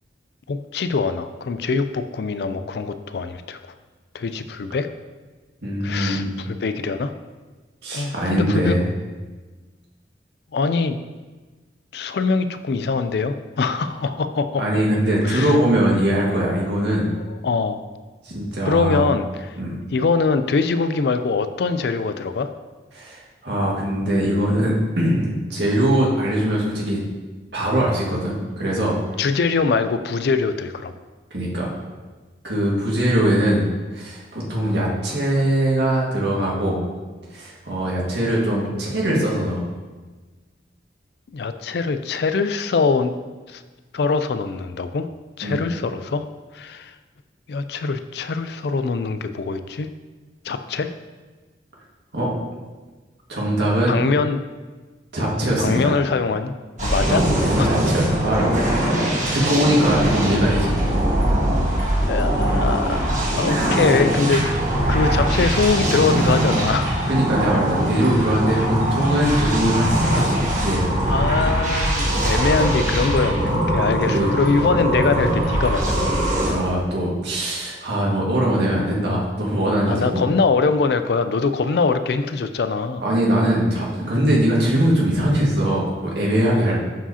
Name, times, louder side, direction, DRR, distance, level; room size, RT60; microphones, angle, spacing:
voice 1, 0.5-3.7 4.1-4.9 5.8-7.1 7.9-8.7 10.5-11.0 11.9-14.8 15.2-15.6 17.2-17.8 18.6-19.6 19.9-22.5 29.2-30.9 41.3-43.1 43.5-43.6 43.9-45.1 45.4-46.2 46.5-46.9 47.5-49.9 50.4-50.9 53.9-54.4 55.6-56.5 56.8-57.3 57.6-57.8 62.0-63.0 63.3-64.5 64.9-67.0 71.1-76.2 79.9-83.0, left 4 dB, 60° left, 10 dB, 0.4 m, -23 dB
voice 2, 5.6-6.4 7.8-8.9 14.6-17.1 18.2-19.1 19.6-19.7 22.9-27.0 27.5-29.0 31.3-31.7 32.4-33.6 33.9-36.8 37.3-39.6 45.4-45.6 52.1-52.3 53.3-54.0 55.1-55.9 57.0-57.2 57.6-58.5 59.3-60.7 67.1-70.3 70.6-70.9 74.1-74.3 76.5-80.2 83.0-86.8, right 1 dB, 70° right, -4 dB, 1.8 m, -21 dB
sound 1, 56.8-76.5, right 1 dB, 40° right, 1.5 m, -21 dB
11.0 x 4.8 x 2.8 m, 1.3 s
head